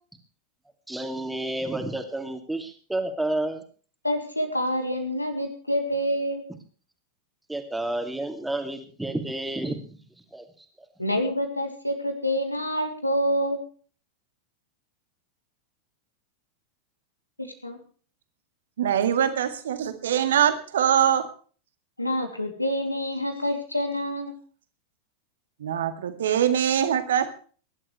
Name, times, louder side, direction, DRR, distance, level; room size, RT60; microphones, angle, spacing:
voice 1, 0.9-3.6 7.5-10.0 10.3-10.4, right 1 dB, 5° right, 5 dB, 2.7 m, -30 dB
voice 2, 4.0-6.5 11.0-13.6 17.4-17.8 22.0-24.3, equal, 85° left, 5 dB, 3.0 m, -27 dB
voice 3, 18.8-21.3 25.6-27.3, right 9 dB, 60° right, 9 dB, 1.9 m, -23 dB
22.0 x 12.0 x 3.3 m, 0.41 s
figure-of-eight pair, 90°, 0 cm